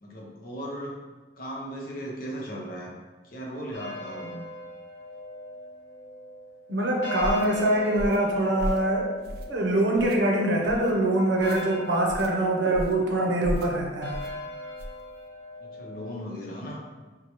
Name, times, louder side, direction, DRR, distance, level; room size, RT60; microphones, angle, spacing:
voice 1, 0.0-1.0 1.4-2.9 3.2-4.4 15.6-16.8, equal, 50° left, -1 dB, 0.7 m, -37 dB
sound 1, 3.7-16.2, left 1 dB, 85° left, 0.8 m, -40 dB
voice 2, 6.7-9.1 9.5-14.2, right 1 dB, 90° right, 0 dB, 0.7 m, -24 dB
sound 2, 7.2-7.5 7.9-8.3 8.6-8.9 9.2-9.6 9.9-10.2 10.6-10.9 11.4-11.6 12.1-12.3 12.7-13.0 13.4-13.7 14.1-14.3 14.8-15.0, equal, 55° right, 0.3 m, -34 dB
4.5 x 2.2 x 2.9 m, 1.2 s
head